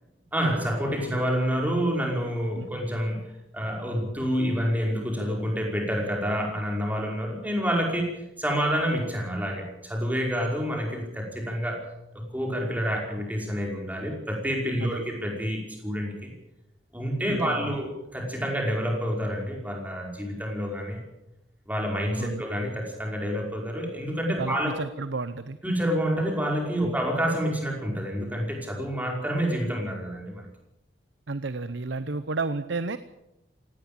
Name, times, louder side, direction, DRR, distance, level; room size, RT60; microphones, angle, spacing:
voice 1, 0.3-11.9 12.1-16.3 16.9-21.0 21.7-24.8 25.6-30.5, equal, 10° right, 0 dB, 5.2 m, -28 dB
voice 2, 17.3-17.6 22.2-22.4 24.4-25.6 26.8-27.0 31.3-33.0, right 3 dB, 75° right, 13 dB, 0.8 m, -32 dB
18.0 x 17.5 x 8.8 m, 0.89 s
head